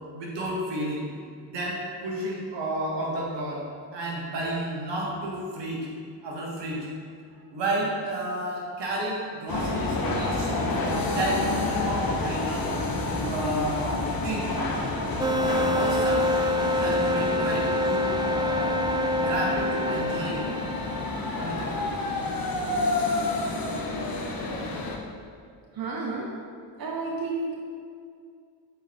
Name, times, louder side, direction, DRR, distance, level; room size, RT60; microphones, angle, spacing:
voice 1, 0.1-1.0 1.5-3.6 3.9-5.9 6.2-6.9 7.5-12.7 13.2-14.5 15.4-16.3 16.7-18.8 19.1-20.5 21.3-21.9, right 1 dB, 85° right, -3 dB, 1.5 m, -31 dB
sound 1, 9.5-25.0, left 2 dB, 55° left, 1.0 m, -29 dB
sound 2, 15.2-21.6, left 1 dB, 10° right, 0.3 m, -27 dB
voice 2, 25.7-26.4 26.8-27.6, right 3 dB, 55° right, -1 dB, 0.9 m, -31 dB
7.9 x 4.6 x 3.5 m, 2.3 s
cardioid pair, 60°, 41 cm